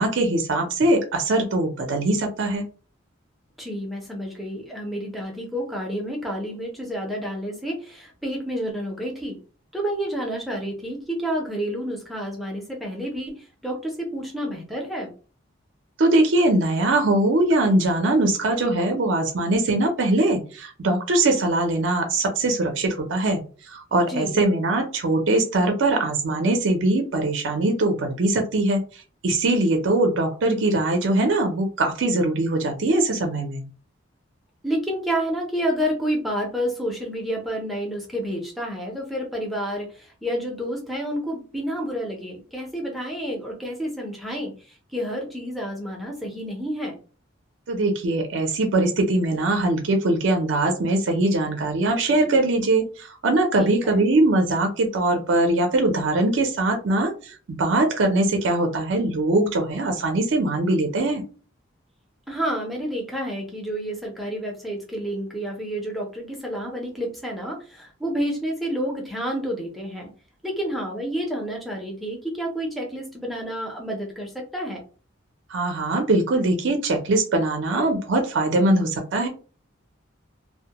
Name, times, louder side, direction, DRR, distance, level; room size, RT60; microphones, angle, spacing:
voice 1, 0.0-2.7 16.0-23.4 23.7-33.6 47.7-61.2 75.5-79.3, right 2 dB, 65° right, 4 dB, 0.4 m, -22 dB
voice 2, 3.6-9.4 9.7-15.1 24.1-24.4 34.6-47.0 53.6-54.0 62.3-70.1 70.4-74.8, equal, ahead, -1 dB, 0.5 m, -29 dB
2.1 x 2.1 x 2.8 m, 0.37 s
head